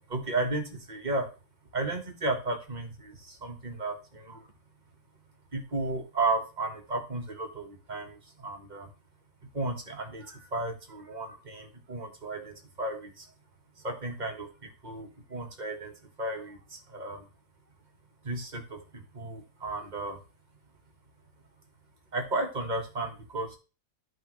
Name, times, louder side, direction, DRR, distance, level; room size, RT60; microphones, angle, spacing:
voice 1, 0.1-1.3 1.7-4.4 5.5-8.9 9.5-13.3 13.8-14.5 14.8-15.9 16.2-17.2 18.2-20.2 22.1-23.6, right 2 dB, 30° right, 3 dB, 1.4 m, -34 dB
13.0 x 5.0 x 3.1 m, 0.33 s
omnidirectional pair, 1.6 m